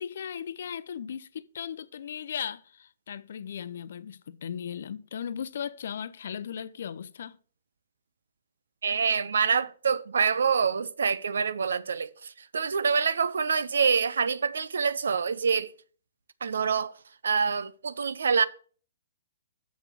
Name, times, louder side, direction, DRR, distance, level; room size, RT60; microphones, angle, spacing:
voice 1, 0.0-7.4, left 8 dB, 65° left, 0.7 m, -37 dB
voice 2, 8.8-15.7 16.4-16.9 17.2-18.4, right 6 dB, 75° right, 0.6 m, -26 dB
7.3 x 6.1 x 6.0 m
hypercardioid pair, 125°, 0 cm